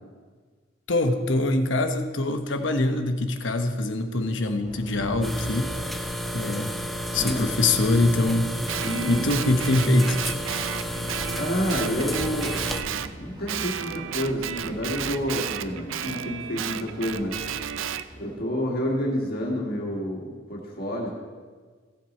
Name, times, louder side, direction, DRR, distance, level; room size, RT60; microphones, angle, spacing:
voice 1, 0.9-5.7 6.3-6.7 7.1-8.5 9.1-10.2, left 2 dB, 65° left, 6 dB, 1.0 m, -23 dB
sound 1, 4.6-18.4, equal, 20° right, 2.3 m, -42 dB
sound 2, 5.2-12.8, equal, ahead, 0.6 m, -31 dB
voice 2, 7.1-7.4 8.8-9.3 11.3-12.6 13.2-17.4 18.2-21.1, equal, 50° left, -2 dB, 1.8 m, -29 dB
Guitar, 8.7-13.1 13.5-18.1, right 8 dB, 85° right, 0.5 m, -33 dB
16.0 x 7.4 x 4.3 m, 1.5 s
head